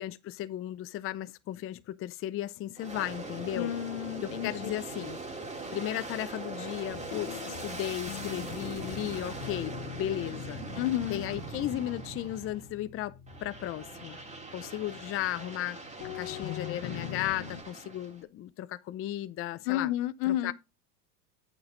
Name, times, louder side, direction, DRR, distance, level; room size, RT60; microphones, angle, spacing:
voice 1, 0.0-3.7 4.2-5.2 5.7-10.6 11.1-14.2 14.5-19.9 20.3-20.5, left 13 dB, 35° left, 0.6 m, -35 dB
Aircraft, 2.8-12.8 13.3-18.2, right 3 dB, 15° right, 2.5 m, -41 dB
voice 2, 3.5-4.7 10.7-11.2 19.7-20.5, left 13 dB, 75° left, 0.9 m, -31 dB
sound 1, 6.9-15.7 16.0-17.6, left 11 dB, 55° left, 1.3 m, -43 dB
8.6 x 6.3 x 3.9 m
supercardioid pair, 110°, 41 cm